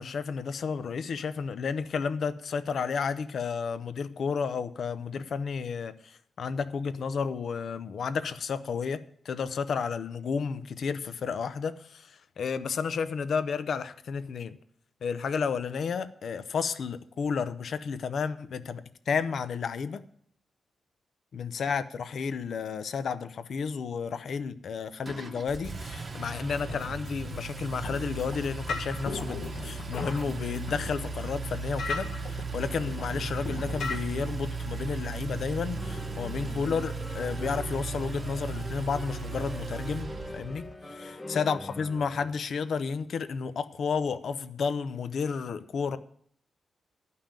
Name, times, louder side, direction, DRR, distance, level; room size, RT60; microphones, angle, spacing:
voice 1, 0.0-14.6 15.0-20.0 21.3-46.0, left 6 dB, 65° left, 0.7 m, -32 dB
Engine, 25.0-40.8, right 4 dB, 35° right, 0.9 m, -36 dB
sound 1, 26.5-34.0, left 4 dB, 85° left, 1.6 m, -39 dB
sound 2, 35.8-42.3, left 2 dB, 15° left, 1.0 m, -43 dB
11.5 x 5.6 x 8.9 m
wide cardioid pair, 130°, 0 cm